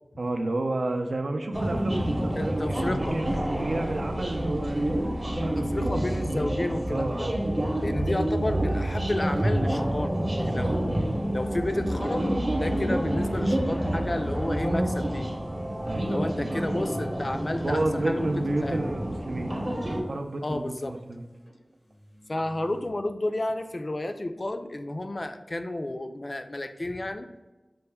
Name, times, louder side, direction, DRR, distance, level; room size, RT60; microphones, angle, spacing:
voice 1, 0.2-3.3 3.5-6.5 6.9-7.7 15.8-16.6 17.3-19.5 20.1-21.3, right 2 dB, 85° right, 4 dB, 0.4 m, -31 dB
sound 1, 1.5-20.0, right 1 dB, 35° right, 0.7 m, -28 dB
voice 2, 2.4-3.2 5.6-7.3 7.8-10.9 11.3-15.3 16.0-18.3 18.6-18.9 20.4-21.0 22.3-27.3, left 1 dB, 45° left, 7 dB, 0.3 m, -31 dB
sound 2, 9.3-10.5 11.0-13.5 14.0-19.1 19.9-21.1 21.5-21.6 21.9-22.9, left 1 dB, 85° left, 0.7 m, -42 dB
5.3 x 2.1 x 3.3 m, 1.1 s
wide cardioid pair, 65°, 0 cm